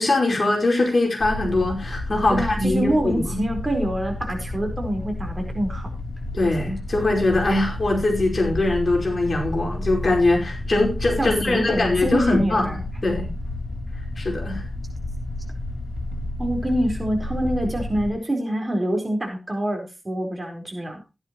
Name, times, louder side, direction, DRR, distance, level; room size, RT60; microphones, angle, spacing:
voice 1, 0.0-3.4 6.3-13.3 14.2-14.7, left 2 dB, 55° left, 0 dB, 5.1 m, -22 dB
sound 1, 1.2-18.1, left 1 dB, 90° left, 3.1 m, -31 dB
voice 2, 2.3-5.9 11.2-12.8 16.4-21.0, right 1 dB, 30° right, 2 dB, 4.6 m, -26 dB
15.0 x 11.0 x 3.1 m, 0.26 s
wide cardioid pair, 100°, 0 cm